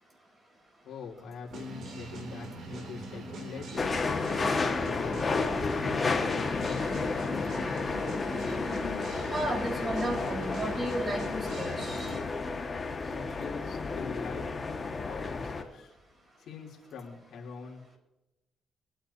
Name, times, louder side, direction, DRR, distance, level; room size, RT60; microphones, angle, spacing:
voice 1, 0.8-6.2 6.7-7.1 12.9-14.5 15.0-15.9 16.4-18.0, left 5 dB, 70° left, -2 dB, 3.4 m, -43 dB
sound 1, 1.5-12.3, right 2 dB, 70° right, 3.1 m, -41 dB
sound 2, 3.8-15.6, left 4 dB, 30° left, 1.8 m, -31 dB
voice 2, 9.3-12.1, right 1 dB, 35° right, 0 dB, 4.9 m, -33 dB
23.5 x 10.0 x 2.9 m, 0.96 s
cardioid pair, 90°, 0 cm